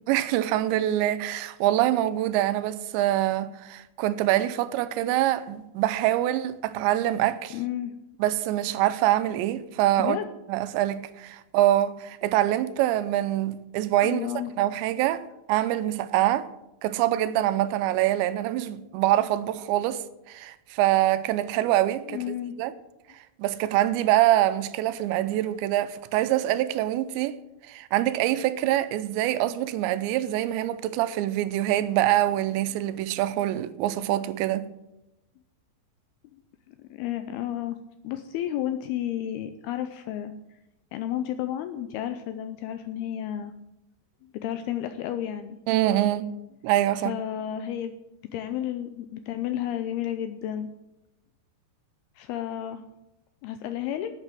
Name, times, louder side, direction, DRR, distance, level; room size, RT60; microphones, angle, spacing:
voice 1, 0.1-7.6 8.2-10.2 10.5-14.3 14.6-15.2 15.5-16.5 16.8-22.7 23.1-27.4 27.6-34.7 45.7-46.3 46.6-47.2, right 14 dB, 85° right, 2.9 m, -25 dB
voice 2, 7.5-7.9 10.0-10.3 14.0-14.5 22.1-22.6 36.7-37.8 38.0-40.3 40.9-43.5 44.2-45.6 47.0-47.9 48.3-50.7 52.2-52.8 53.4-54.1, left 11 dB, 85° left, 2.3 m, -32 dB
11.0 x 8.6 x 7.5 m
omnidirectional pair, 5.1 m